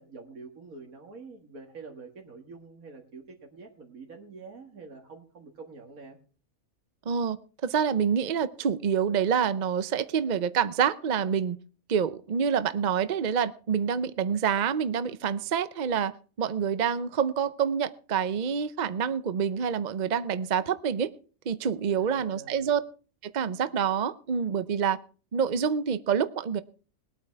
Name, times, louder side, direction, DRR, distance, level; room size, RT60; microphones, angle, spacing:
voice 1, 0.0-6.2 21.9-22.7, right 4 dB, 90° right, 1 dB, 2.2 m, -46 dB
voice 2, 7.1-7.4 7.6-11.6 11.9-21.1 21.5-22.8 23.2-25.0 25.3-26.6, right 7 dB, 40° right, 14 dB, 0.7 m, -27 dB
20.5 x 9.2 x 4.6 m, 0.38 s
omnidirectional pair, 1.4 m